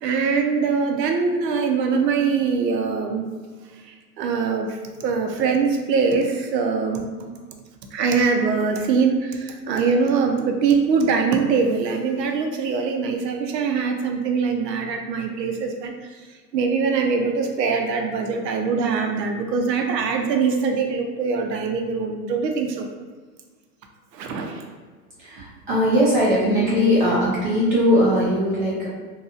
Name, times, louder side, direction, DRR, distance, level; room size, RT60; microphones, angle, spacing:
voice 1, 0.0-3.3 3.9-7.3 7.9-16.2 16.5-22.9 24.1-24.6, right 5 dB, 85° right, 4 dB, 0.6 m, -23 dB
voice 2, 25.2-28.9, equal, 30° right, -7 dB, 0.4 m, -20 dB
2.7 x 2.3 x 2.5 m, 1.4 s
hypercardioid pair, 145°, 49 cm